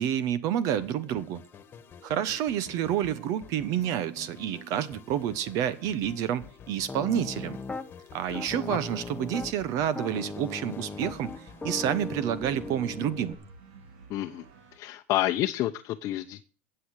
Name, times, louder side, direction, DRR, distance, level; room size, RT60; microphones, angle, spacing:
voice 1, 0.0-1.4 2.0-7.6 8.1-11.3 11.6-13.4, right 10 dB, 55° right, 1.1 m, -29 dB
sound 1, 0.8-13.7, left 7 dB, 30° left, 1.5 m, -51 dB
sound 2, 1.5-14.8, right 6 dB, 80° right, 3.1 m, -55 dB
Piano, 6.9-7.9 8.3-9.6 10.0-13.3, left 3 dB, 15° left, 1.0 m, -38 dB
voice 2, 8.3-8.8 14.1-14.4 14.7-16.4, left 15 dB, 50° left, 0.8 m, -30 dB
15.5 x 7.9 x 6.5 m
supercardioid pair, 125°, 7 cm